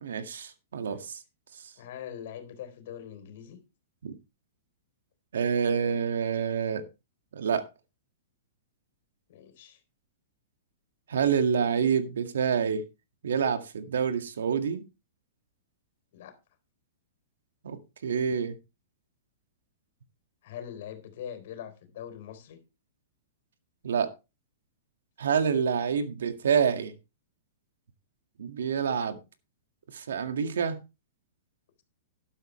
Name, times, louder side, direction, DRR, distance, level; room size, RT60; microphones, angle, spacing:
voice 1, 0.0-1.2 4.0-4.1 5.3-6.8 7.3-7.7 11.1-12.8 13.2-14.8 17.6-18.5 23.8-24.1 25.2-26.9 28.4-29.2 29.9-30.8, right 7 dB, 90° right, 1.9 m, -27 dB
voice 2, 1.8-3.6 9.3-9.8 16.1-16.4 20.4-22.6 25.3-25.7, left 9 dB, 60° left, 3.8 m, -43 dB
12.5 x 11.0 x 3.2 m
hypercardioid pair, 150°, 0 cm